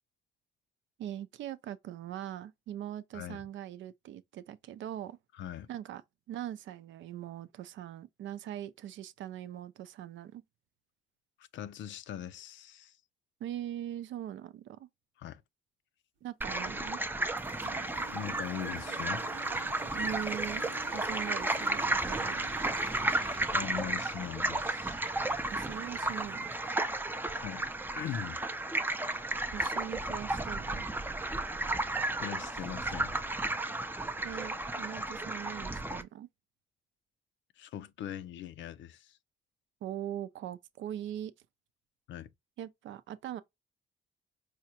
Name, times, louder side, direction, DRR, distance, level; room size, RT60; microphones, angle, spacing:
voice 1, 1.0-5.2 5.7-6.0 6.3-10.4 13.4-14.9 16.2-17.0 19.9-22.5 25.5-26.5 29.5-30.8 34.2-36.3 39.8-41.3 42.6-43.4, right 11 dB, 70° right, 0.5 m, -41 dB
voice 2, 5.4-5.7 11.4-13.0 15.2-15.4 18.1-19.3 23.5-25.0 26.9-27.7 28.0-28.4 32.2-33.2 37.6-39.2 42.1-42.3, left 10 dB, 70° left, 0.5 m, -41 dB
sound 1, 16.4-36.0, right 2 dB, 10° right, 0.4 m, -33 dB
sound 2, 16.5-17.1 17.4-26.7, right 7 dB, 90° right, 0.8 m, -52 dB
4.8 x 2.2 x 2.8 m
cardioid pair, 90°, 20 cm